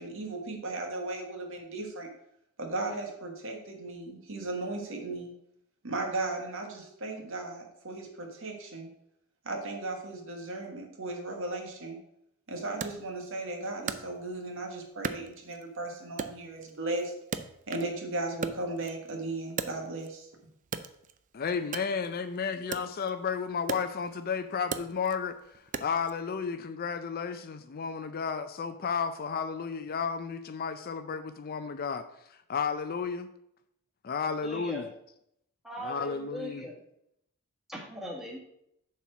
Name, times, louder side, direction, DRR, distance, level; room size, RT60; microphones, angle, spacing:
voice 1, 0.0-2.1 2.6-5.3 5.8-8.9 9.4-12.0 12.5-17.1 17.7-20.3, right 2 dB, 60° right, 3 dB, 1.5 m, -36 dB
Wood, 12.8-14.6 15.0-15.8 16.2-18.0 18.3-20.2 20.6-26.2, right 5 dB, 35° right, 0.4 m, -39 dB
voice 2, 21.3-33.3 34.0-34.9 35.8-36.7, left 6 dB, 45° left, 10 dB, 0.4 m, -33 dB
voice 3, 34.4-34.8 35.6-36.7 37.7-38.4, equal, ahead, -2 dB, 1.7 m, -39 dB
7.1 x 4.3 x 6.2 m, 0.76 s
head